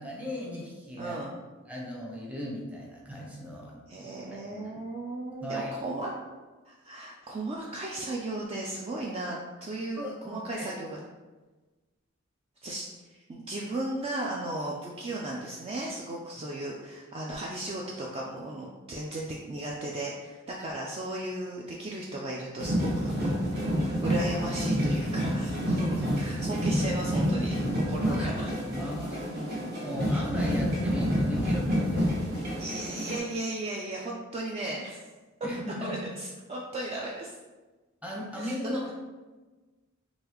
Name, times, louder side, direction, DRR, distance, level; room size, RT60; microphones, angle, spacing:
voice 1, 0.0-1.2 1.7-4.1 4.4-4.7 5.4-5.7 10.0-10.7 16.4-16.5 28.0-29.2 29.8-32.3 35.4-36.1 38.0-38.9, equal, 5° right, -3 dB, 0.8 m, -37 dB
voice 2, 1.0-1.4 3.9-6.1 6.7-11.0 12.6-28.5 29.3-29.7 32.3-35.0 35.8-37.3 38.3-38.8, right 1 dB, 30° right, -3 dB, 0.4 m, -36 dB
sound 1, 22.6-33.2, equal, 50° right, 1.1 m, -28 dB
3.9 x 3.0 x 3.0 m, 1.2 s
head